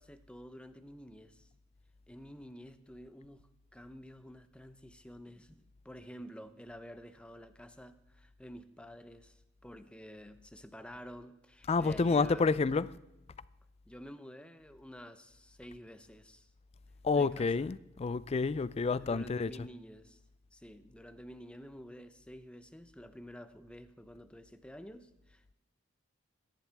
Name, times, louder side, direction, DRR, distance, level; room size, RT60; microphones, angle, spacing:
voice 1, 0.0-1.5 2.1-12.6 13.9-16.5 17.1-17.5 19.0-20.2 20.5-25.5, equal, 5° left, 0.7 m, -50 dB
voice 2, 11.7-12.9 17.0-19.5, left 4 dB, 30° left, 0.3 m, -29 dB
22.5 x 10.5 x 3.5 m
head